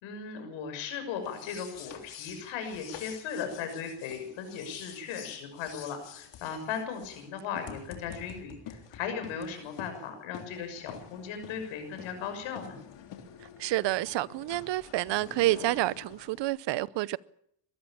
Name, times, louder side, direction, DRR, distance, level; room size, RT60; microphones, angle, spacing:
voice 1, 0.0-12.8, left 7 dB, 85° left, 6.3 m, -37 dB
sound 1, 1.2-16.4, left 8 dB, 65° left, 3.5 m, -48 dB
voice 2, 13.6-17.2, right 16 dB, 65° right, 0.8 m, -29 dB
22.5 x 13.5 x 8.7 m
cardioid pair, 95°, 46 cm